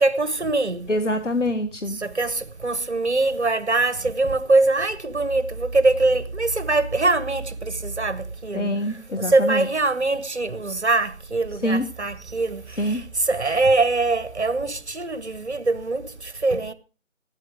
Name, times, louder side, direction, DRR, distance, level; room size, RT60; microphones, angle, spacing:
voice 1, 0.0-0.9 2.0-8.7 9.3-12.6 13.3-16.0 16.4-16.7, right 2 dB, 60° right, 1.1 m, -22 dB
voice 2, 0.9-2.0 8.5-9.7 11.6-11.9 12.8-13.0, left 1 dB, 65° left, 1.3 m, -25 dB
16.5 x 8.9 x 4.9 m
figure-of-eight pair, 180°, 39 cm